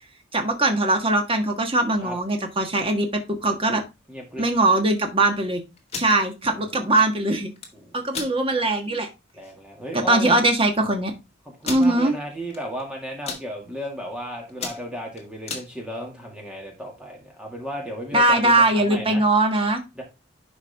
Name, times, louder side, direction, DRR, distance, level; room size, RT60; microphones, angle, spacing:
voice 1, 0.3-3.1 3.4-3.8 4.4-5.6 6.0-7.5 7.9-9.1 10.1-11.1 11.6-12.1 18.1-19.8, right 2 dB, 25° right, 4 dB, 1.5 m, -21 dB
voice 2, 4.1-4.5 6.8-6.9 7.7-8.0 9.3-10.4 11.6-19.2 20.0-20.1, equal, 5° right, 0 dB, 2.0 m, -34 dB
sound 1, 5.8-6.2 7.4-7.7 8.1-8.3 8.8-8.9 9.3-9.5 10.3-10.4 10.6-10.7 11.6-11.9 12.5-12.8 13.1-13.4 14.0-14.2 14.5-15.7, left 5 dB, 30° left, 1.8 m, -33 dB
11.0 x 4.8 x 3.4 m, 0.25 s
head